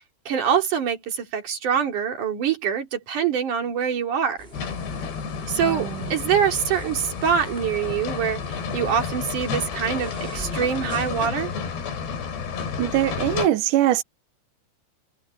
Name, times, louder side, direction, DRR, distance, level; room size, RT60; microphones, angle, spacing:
voice 1, 0.3-4.4 5.5-11.5, right 8 dB, 45° right, 4.2 m, -24 dB
sound 1, 4.4-11.3, right 1 dB, 10° right, 5.6 m, -42 dB
sound 2, 4.5-13.5, left 6 dB, 65° left, 5.4 m, -31 dB
voice 2, 5.6-5.9 12.8-14.0, right 13 dB, 75° right, 1.9 m, -22 dB
omnidirectional pair, 5.2 m